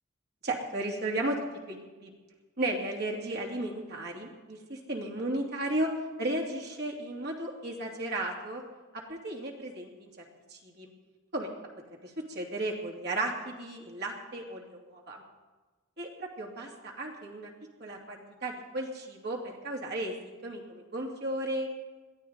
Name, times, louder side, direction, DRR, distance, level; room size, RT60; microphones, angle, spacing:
voice 1, 0.4-1.4 1.7-2.1 2.6-5.9 6.2-8.6 8.9-10.2 10.5-10.9 11.3-11.5 11.9-15.2 16.0-16.1 16.4-17.5 17.8-21.7, right 1 dB, 55° right, 0 dB, 2.7 m, -34 dB
21.5 x 15.0 x 4.0 m, 1.2 s
head